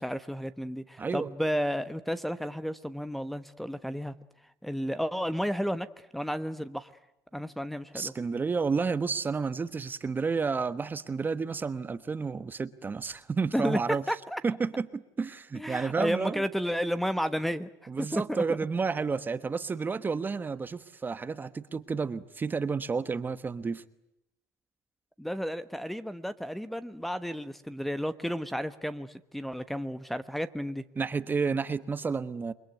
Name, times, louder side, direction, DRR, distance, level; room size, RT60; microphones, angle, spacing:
voice 1, 0.0-4.1 4.6-5.9 6.1-6.9 7.3-8.1 13.5-13.8 14.1-14.4 15.5-17.7 18.0-18.4 25.2-30.8, equal, ahead, 12 dB, 1.2 m, -32 dB
voice 2, 1.0-1.3 7.9-14.0 14.4-16.4 17.9-23.8 31.0-32.5, right 5 dB, 25° right, 13 dB, 1.2 m, -31 dB
28.5 x 22.0 x 9.3 m, 0.83 s
supercardioid pair, 100°, 8 cm